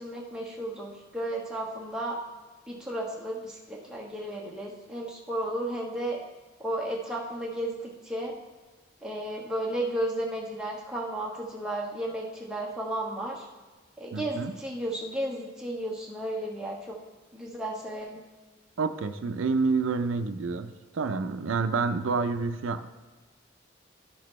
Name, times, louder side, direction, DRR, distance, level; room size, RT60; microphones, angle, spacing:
voice 1, 0.0-2.2 2.7-6.2 6.6-8.3 9.0-13.5 14.0-17.0 17.3-18.2, right 1 dB, 5° right, -4 dB, 1.2 m, -33 dB
voice 2, 14.1-14.5 18.8-22.9, right 4 dB, 90° right, 8 dB, 0.5 m, -28 dB
13.0 x 6.0 x 3.1 m, 1.3 s
head